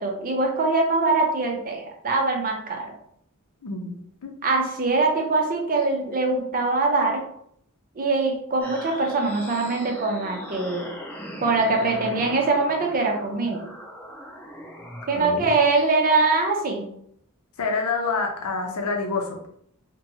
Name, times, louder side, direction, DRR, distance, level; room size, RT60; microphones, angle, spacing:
voice 1, 0.0-2.9 4.4-7.2 8.0-10.9 11.4-13.6 15.1-16.9, right 3 dB, 40° right, 1 dB, 0.6 m, -23 dB
voice 2, 3.6-3.9 4.2-4.4 15.1-15.5 17.6-19.5, left 4 dB, 70° left, 2 dB, 0.6 m, -27 dB
sound 1, 8.6-15.5, equal, 10° left, 0.7 m, -39 dB
2.7 x 2.2 x 2.7 m, 0.68 s
head